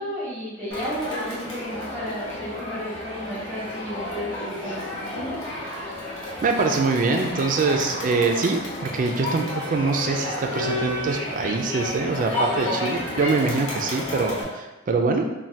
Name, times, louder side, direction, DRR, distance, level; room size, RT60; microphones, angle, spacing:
voice 1, 0.0-5.4, equal, 10° right, -12 dB, 0.8 m, -33 dB
Crowd, 0.7-14.4, left 1 dB, 85° left, 0.8 m, -31 dB
voice 2, 6.4-15.3, right 4 dB, 45° right, 4 dB, 0.3 m, -24 dB
2.7 x 2.2 x 3.2 m, 1.1 s
head